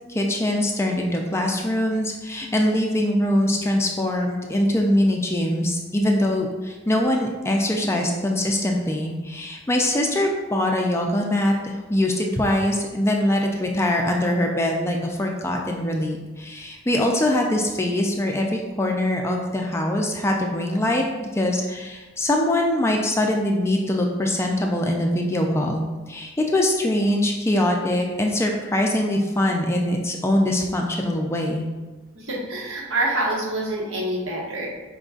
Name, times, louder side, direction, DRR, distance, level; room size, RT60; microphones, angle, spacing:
voice 1, 0.1-31.6, left 1 dB, 15° left, 1 dB, 0.3 m, -23 dB
voice 2, 32.1-34.7, right 1 dB, 85° right, -4 dB, 1.2 m, -26 dB
5.2 x 3.8 x 2.4 m, 1.2 s
head